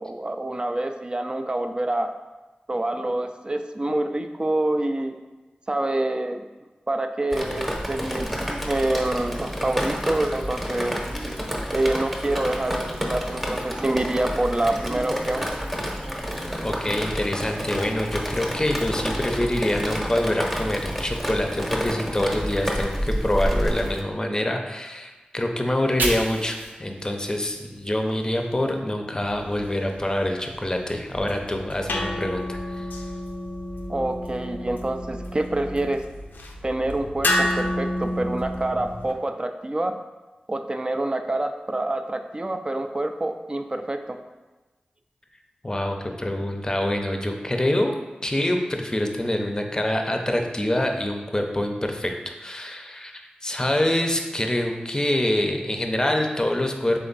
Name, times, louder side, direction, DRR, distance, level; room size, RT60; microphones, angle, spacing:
voice 1, 0.0-2.1 2.7-5.1 5.7-6.5 6.9-8.3 8.6-11.0 11.7-15.4 33.9-36.0 36.6-39.9 40.5-44.2, right 1 dB, 30° right, 6 dB, 0.4 m, -26 dB
Drip, 7.3-24.0, equal, ahead, 0.9 m, -29 dB
voice 2, 16.6-32.9 45.6-57.0, left 1 dB, 20° left, 3 dB, 0.6 m, -26 dB
Fire, 25.6-28.8 29.1-31.2, right 2 dB, 85° right, 0.8 m, -35 dB
sound 1, 31.1-39.1, left 1 dB, 85° left, 0.5 m, -30 dB
3.7 x 3.4 x 4.0 m, 1.2 s
cardioid pair, 40°, 3 cm